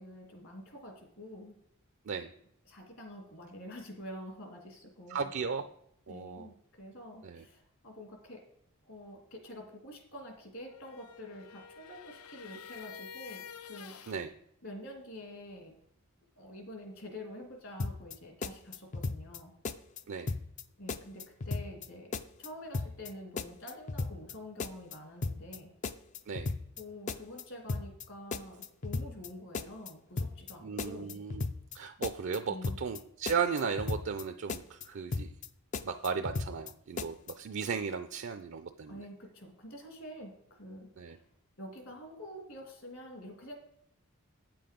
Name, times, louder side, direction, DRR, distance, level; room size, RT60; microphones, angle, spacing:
voice 1, 0.0-1.6 2.7-5.3 6.1-8.4 8.9-14.2 14.6-15.7 16.4-19.5 20.8-22.1 22.4-25.7 26.8-31.2 32.5-32.8 38.9-41.2 41.6-43.5, left 1 dB, 60° left, 2 dB, 2.5 m, -47 dB
voice 2, 5.1-5.6 6.1-6.5 7.2-7.4 14.1-14.3 20.1-20.3 26.3-26.5 30.6-31.4 31.7-35.3 35.8-39.1 41.0-41.2, right 6 dB, 55° right, 8 dB, 0.4 m, -35 dB
sound 1, 10.6-14.2, left 7 dB, 85° left, 0.5 m, -49 dB
sound 2, 17.8-18.2 18.4-19.4 19.6-20.0 20.3-20.6 20.9-21.9 22.1-22.5 22.7-23.1 23.4-24.3 24.6-25.0 25.2-25.6 25.8-26.8 27.1-27.4 27.7-28.0 28.3-29.3 29.5-29.9 30.2-30.5 30.8-31.8 32.0-32.4 32.6-33.0 33.3-34.2 34.5-34.9 35.1-35.5 35.7-36.7 37.0-37.3, left 3 dB, 35° left, 0.3 m, -35 dB
8.8 x 7.8 x 5.1 m, 0.73 s
head